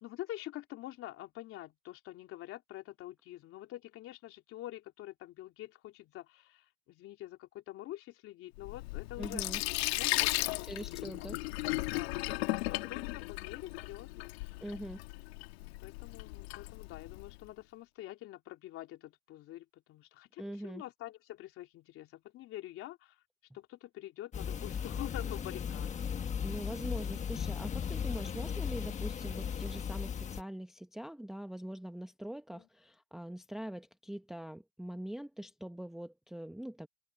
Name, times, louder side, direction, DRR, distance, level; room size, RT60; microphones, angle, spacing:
voice 1, 0.0-9.6 10.0-10.9 11.1-11.3 11.9-14.6 15.7-23.2 23.5-25.9 32.5-32.7, left 14 dB, 45° left, 3.3 m, -46 dB
Sink (filling or washing), 8.6-17.4, left 21 dB, 85° left, 1.9 m, -36 dB
voice 2, 9.2-9.6 10.6-11.4 14.6-15.0 20.4-20.8 26.4-36.9, right 1 dB, ahead, 0.8 m, -43 dB
sound 1, 24.3-30.4, left 7 dB, 25° left, 1.4 m, -36 dB
supercardioid pair, 140°, 31 cm